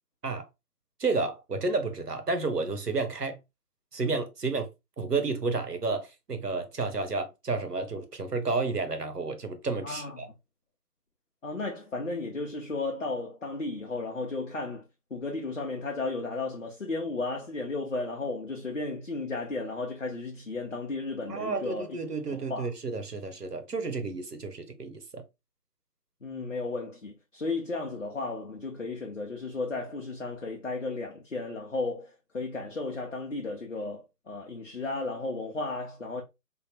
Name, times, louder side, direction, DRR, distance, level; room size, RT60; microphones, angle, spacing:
voice 1, 1.0-3.4 3.9-4.7 5.0-10.3 21.3-25.2, right 3 dB, 75° right, 1.0 m, -31 dB
voice 2, 9.8-10.3 11.4-14.8 15.1-22.0 22.3-22.7 26.2-36.2, left 3 dB, 50° left, 0.7 m, -34 dB
3.5 x 2.0 x 3.3 m
figure-of-eight pair, 160°, 48 cm